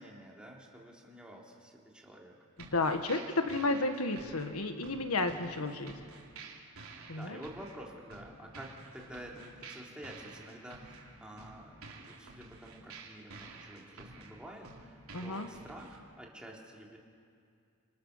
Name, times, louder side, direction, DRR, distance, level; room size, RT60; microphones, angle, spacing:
voice 1, 0.0-2.3 7.1-17.0, right 1 dB, 5° right, -2 dB, 3.3 m, -49 dB
voice 2, 2.6-6.0 7.1-7.4 15.1-15.5, left 2 dB, 85° left, 7 dB, 1.5 m, -32 dB
sound 1, 2.6-16.0, right 3 dB, 75° right, 4.0 m, -51 dB
28.5 x 27.5 x 6.7 m, 2.3 s
head